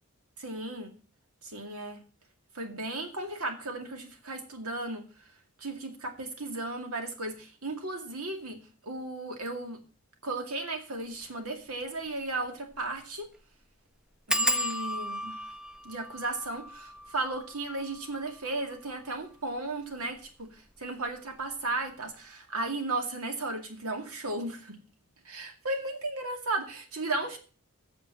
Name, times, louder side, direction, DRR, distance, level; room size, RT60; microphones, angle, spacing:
voice 1, 0.4-0.9 1.4-2.0 2.5-5.1 5.6-8.6 8.8-9.8 10.2-13.3 14.3-15.5 15.8-24.8 25.2-27.4, right 2 dB, 75° right, 4 dB, 2.3 m, -35 dB
sound 1, 11.1-11.3 11.7-11.8 12.1-12.2 12.7-13.0 13.2-13.3 14.3-19.6 20.2-20.8 21.1-21.4 21.7-21.8, equal, 5° right, 0.5 m, -35 dB
8.8 x 6.9 x 7.3 m, 0.38 s
head